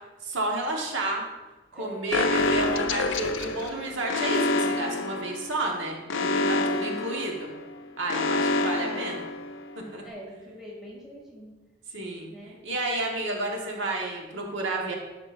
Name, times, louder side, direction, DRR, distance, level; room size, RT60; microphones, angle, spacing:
voice 1, 0.2-1.2 1.7-7.5 8.0-9.3 9.9-10.0 11.9-12.3 12.6-14.9, right 2 dB, 80° right, 0 dB, 1.3 m, -31 dB
voice 2, 1.7-2.6 6.5-6.9 8.6-9.1 10.0-11.5 12.3-12.6, equal, ahead, -5 dB, 2.2 m, -44 dB
Alarm, 2.1-9.9, left 3 dB, 75° left, 0.5 m, -28 dB
11.0 x 6.4 x 2.5 m, 1.2 s
head